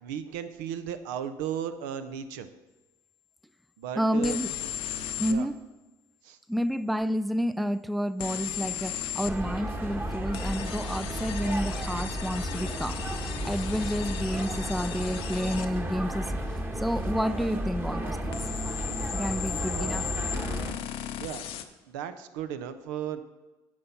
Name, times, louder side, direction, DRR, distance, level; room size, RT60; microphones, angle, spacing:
voice 1, 0.0-2.5 3.8-4.4 5.3-5.5 6.2-6.4 19.8-20.0 21.2-21.5 21.9-23.2, right 9 dB, 85° right, 0.5 m, -35 dB
voice 2, 4.0-4.5 5.2-5.6 6.5-18.4 19.1-20.5, equal, ahead, 0.3 m, -30 dB
sound 1, 4.2-5.4 8.2-9.4 10.3-15.7 18.3-21.6, left 10 dB, 65° left, 0.6 m, -36 dB
sound 2, 9.2-20.7, right 1 dB, 20° right, 1.1 m, -33 dB
9.4 x 4.3 x 5.7 m
supercardioid pair, 70°, 10 cm